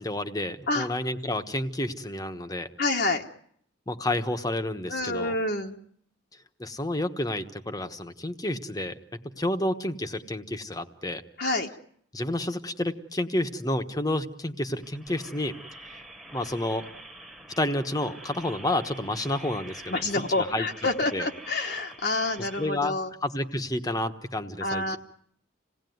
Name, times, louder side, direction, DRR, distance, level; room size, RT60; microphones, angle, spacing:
voice 1, 0.0-2.7 3.9-5.3 6.6-11.2 12.1-15.6 15.9-16.0 16.3-16.8 17.6-20.0 20.4-20.7 21.1-21.3 22.6-25.0, left 1 dB, 20° left, 8 dB, 1.2 m, -30 dB
voice 2, 2.8-3.2 4.9-5.8 11.4-11.7 19.9-23.1 24.6-25.0, left 2 dB, 50° left, 1 dB, 1.2 m, -28 dB
sound 1, 14.7-22.7, right 1 dB, ahead, 1.4 m, -46 dB
27.5 x 18.0 x 9.4 m, 0.68 s
head